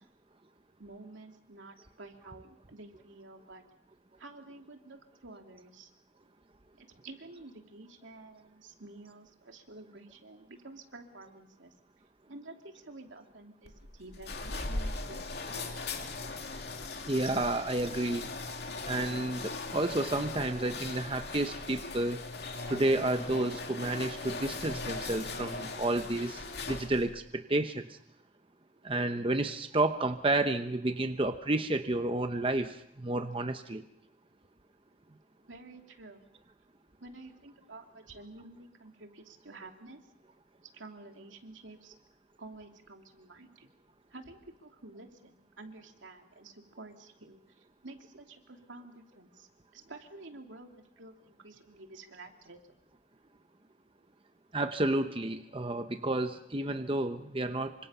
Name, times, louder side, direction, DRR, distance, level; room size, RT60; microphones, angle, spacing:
voice 1, 0.8-3.6 4.2-5.9 6.8-11.7 12.3-15.7 35.5-36.2 37.0-40.0 40.7-41.9 42.4-43.7 44.1-52.6, right 2 dB, 85° right, 3 dB, 2.8 m, -50 dB
sound 1, 13.7-27.2, left 3 dB, 60° left, 2.6 m, -39 dB
voice 2, 17.1-18.3 18.9-22.2 22.7-27.8 28.8-33.8 54.5-57.7, right 2 dB, 30° right, 7 dB, 0.9 m, -31 dB
27.5 x 25.5 x 5.6 m, 0.78 s
head